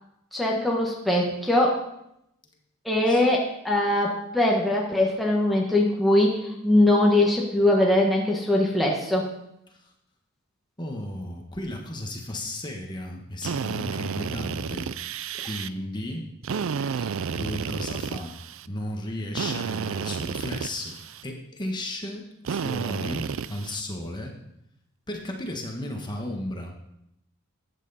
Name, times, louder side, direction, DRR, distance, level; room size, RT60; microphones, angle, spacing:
voice 1, 0.3-1.8 2.8-9.3, left 1 dB, ahead, -1 dB, 1.3 m, -22 dB
voice 2, 10.8-15.0 15.4-16.3 17.4-18.4 18.7-24.4 25.1-26.8, left 1 dB, 20° left, 1 dB, 1.4 m, -34 dB
Drill, 13.4-15.7 16.4-18.7 19.4-21.2 22.4-23.8, right 6 dB, 60° right, 0.4 m, -31 dB
13.5 x 9.2 x 4.2 m, 0.80 s
head